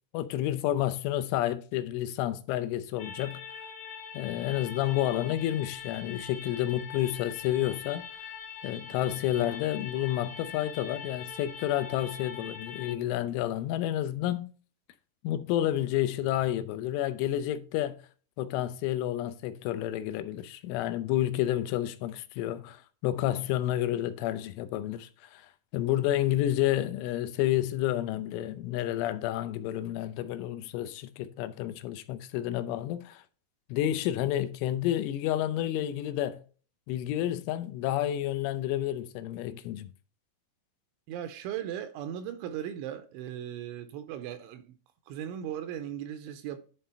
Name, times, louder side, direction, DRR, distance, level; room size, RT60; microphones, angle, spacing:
voice 1, 0.1-3.4 4.1-8.0 8.6-14.5 15.2-18.0 18.4-25.4 25.7-33.2 33.7-36.4 36.9-39.9, left 13 dB, 85° left, 3.1 m, -30 dB
sound 1, 3.0-12.9, left 6 dB, 65° left, 3.4 m, -43 dB
voice 2, 41.1-44.8 45.1-46.6, right 10 dB, 80° right, 2.9 m, -37 dB
11.5 x 3.8 x 4.2 m
omnidirectional pair, 5.5 m